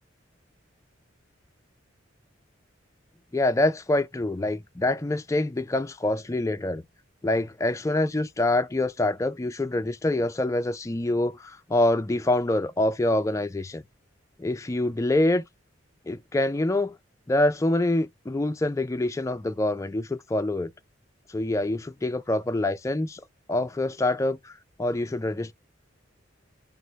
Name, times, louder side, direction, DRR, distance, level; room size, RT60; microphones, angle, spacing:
voice 1, 3.3-6.8 7.2-13.8 14.4-15.4 16.1-17.0 17.3-20.7 21.3-23.2 23.5-25.5, left 1 dB, 15° left, 0.4 m, -25 dB
4.7 x 2.1 x 3.9 m
head